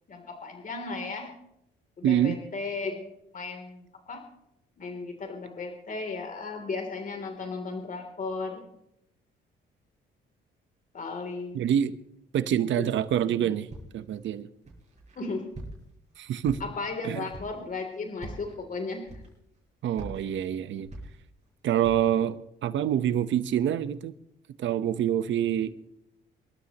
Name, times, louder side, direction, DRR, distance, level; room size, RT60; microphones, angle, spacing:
voice 1, 0.1-1.3 2.0-3.0 3.3-4.2 4.8-8.6 10.9-11.6 12.7-12.9 15.1-15.4 16.6-19.0, left 3 dB, 40° left, 3.2 m, -35 dB
voice 2, 2.0-2.4 11.5-11.9 12.3-13.7 13.9-14.5 16.2-16.6 17.0-17.2 19.8-20.9 21.6-24.1 24.6-25.7, right 10 dB, 75° right, 1.1 m, -26 dB
Walk footsteps, 13.7-14.1 14.7-15.2 15.5-16.0 16.4-16.9 17.3-17.6 18.1-18.6 19.1-19.6 19.9-21.5 21.8-22.2, right 1 dB, 35° right, 6.8 m, -43 dB
27.0 x 13.0 x 3.0 m
cardioid pair, 90°, 20 cm